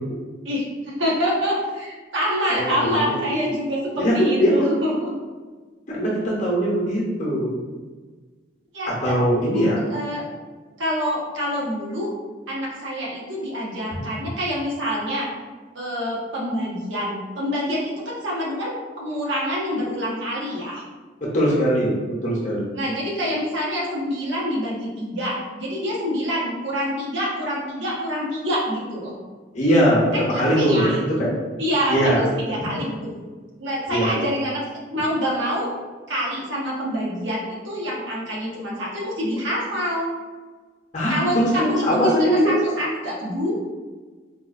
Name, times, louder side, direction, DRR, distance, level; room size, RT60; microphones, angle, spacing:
voice 1, 0.4-5.1 8.7-9.1 9.4-10.2 10.8-12.1 12.5-15.3 15.7-20.8 22.7-29.1 30.1-31.0 31.6-33.1 33.6-34.6 34.9-35.7 36.1-40.1 41.1-43.5, equal, 80° right, -5 dB, 0.9 m, -26 dB
voice 2, 2.5-3.2 4.0-4.8 5.9-7.5 8.9-9.8 21.2-21.9 22.2-22.6 29.5-31.3 31.9-32.2 33.9-34.1 40.9-42.6, equal, 35° left, -4 dB, 0.6 m, -21 dB
4.1 x 2.3 x 2.4 m, 1.4 s
head